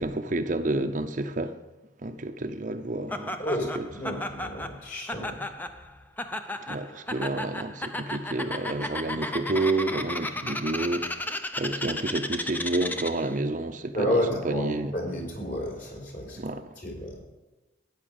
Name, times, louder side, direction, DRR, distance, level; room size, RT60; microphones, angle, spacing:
voice 1, 0.0-1.5 2.0-3.4 3.8-3.9 6.7-14.9 16.3-16.7, right 2 dB, 40° right, 0.7 m, -30 dB
Laughter, 3.1-13.3, left 1 dB, 10° left, 0.6 m, -34 dB
voice 2, 3.4-5.4 13.9-14.7 14.9-16.4 16.8-17.2, equal, 45° left, 4.8 m, -31 dB
13.5 x 9.8 x 5.3 m
head